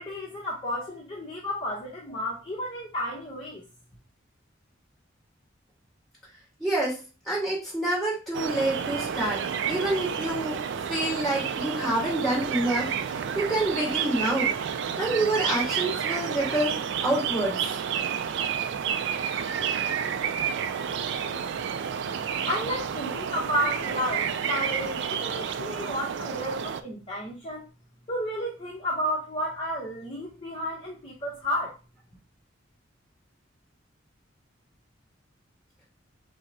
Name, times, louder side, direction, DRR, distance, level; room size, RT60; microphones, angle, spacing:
voice 1, 0.0-3.6 22.4-27.7 28.1-31.8, equal, 30° left, 0.8 m, -32 dB
voice 2, 6.6-7.0 7.3-9.4 9.7-10.6 10.9-14.5 15.0-17.6, right 1 dB, ahead, 2.2 m, -27 dB
sound 1, 8.3-26.8, right 7 dB, 60° right, 0.3 m, -30 dB
6.1 x 2.1 x 2.7 m
head